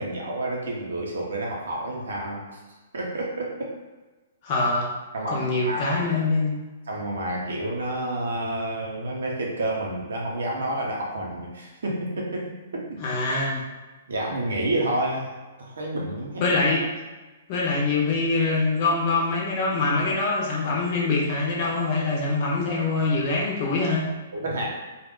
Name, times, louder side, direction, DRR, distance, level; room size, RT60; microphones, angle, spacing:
voice 1, 0.0-2.5 2.9-3.7 5.1-6.0 6.9-13.0 14.1-15.3 15.6-16.5 24.3-24.7, right 1 dB, 75° right, -2 dB, 0.8 m, -29 dB
voice 2, 4.4-4.9 5.3-6.6 13.0-13.6 16.4-16.8 17.5-24.0, left 3 dB, 45° left, -3 dB, 0.8 m, -24 dB
2.4 x 2.0 x 3.7 m, 1.2 s
hypercardioid pair, 125°, 0 cm